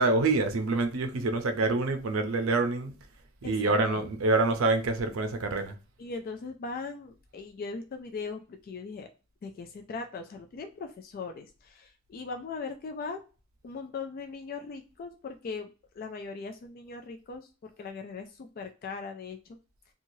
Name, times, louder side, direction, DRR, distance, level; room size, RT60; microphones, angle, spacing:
voice 1, 0.0-2.9 3.4-5.7, right 3 dB, 80° right, 0.5 m, -26 dB
voice 2, 3.4-4.0 6.0-9.1 9.4-13.2 13.6-19.6, left 4 dB, 45° left, 0.3 m, -39 dB
3.0 x 2.3 x 2.6 m
head